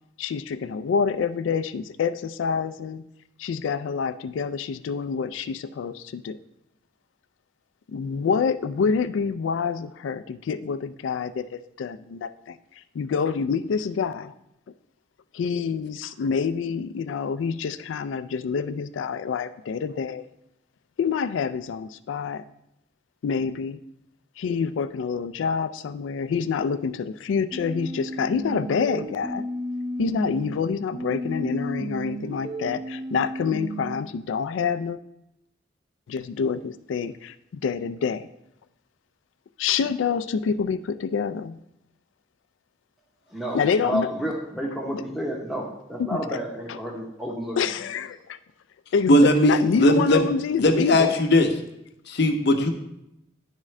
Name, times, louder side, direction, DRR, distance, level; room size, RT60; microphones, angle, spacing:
voice 1, 0.2-3.0 3.4-6.4 7.9-14.3 15.3-20.3 21.0-22.4 23.2-23.8 24.4-29.4 30.0-35.0 36.1-38.3 39.6-41.6 43.5-44.1 44.9-45.0 46.0-46.4 46.7-46.8 47.6-48.4 48.9-51.1, left 6 dB, 85° left, 14 dB, 0.3 m, -27 dB
sound 1, 27.5-30.5 30.9-34.0, equal, 20° right, 0.5 m, -33 dB
voice 2, 43.3-47.8, equal, ahead, -1 dB, 0.9 m, -31 dB
voice 3, 49.1-50.2 50.6-51.5 52.1-52.7, left 1 dB, 65° left, 5 dB, 0.7 m, -18 dB
10.5 x 3.6 x 3.2 m, 0.84 s
head